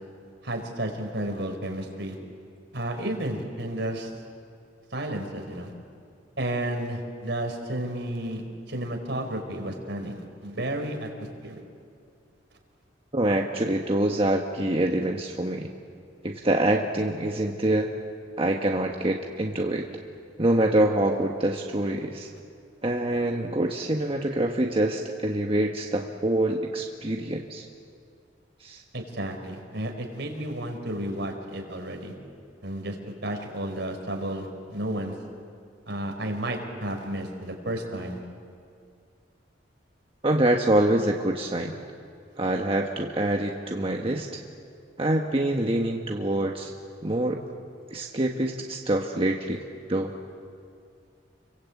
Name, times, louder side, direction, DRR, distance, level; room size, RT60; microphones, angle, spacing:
voice 1, 0.4-2.2 2.7-4.1 4.9-5.7 6.4-11.1 11.4-11.6 28.9-32.1 32.6-33.0 33.2-35.1 35.9-38.2, right 1 dB, 65° right, 3 dB, 4.5 m, -32 dB
voice 2, 13.1-15.7 16.2-17.9 18.4-19.9 20.4-22.3 22.8-27.7 28.6-28.8 40.2-41.8 42.4-44.4 45.0-46.7 47.0-47.4 47.9-49.6 49.9-50.1, right 1 dB, 30° right, 1 dB, 1.3 m, -25 dB
29.5 x 23.5 x 8.4 m, 2.3 s
head